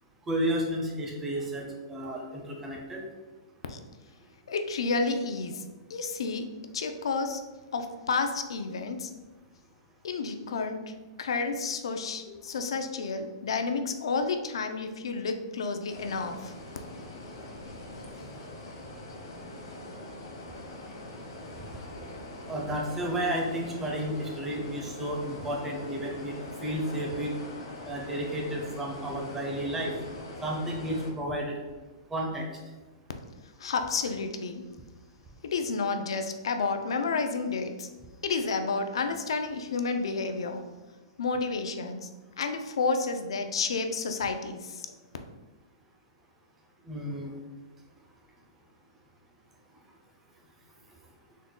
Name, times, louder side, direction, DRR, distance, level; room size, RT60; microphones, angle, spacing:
voice 1, 0.3-3.0 22.5-26.4 26.6-27.3 27.9-29.9 30.4-31.6 32.1-32.5 46.9-47.3, right 1 dB, 10° right, 0 dB, 0.4 m, -32 dB
voice 2, 4.5-5.6 5.9-6.5 6.7-7.4 7.7-9.1 10.0-16.5 33.6-34.6 35.5-37.9 38.2-40.7 41.2-42.1 42.4-44.9, left 4 dB, 90° left, 6 dB, 0.4 m, -30 dB
sound 1, 15.9-31.1, left 1 dB, 70° left, 0.9 m, -43 dB
3.7 x 2.2 x 3.7 m, 1.2 s
hypercardioid pair, 175°, 3 cm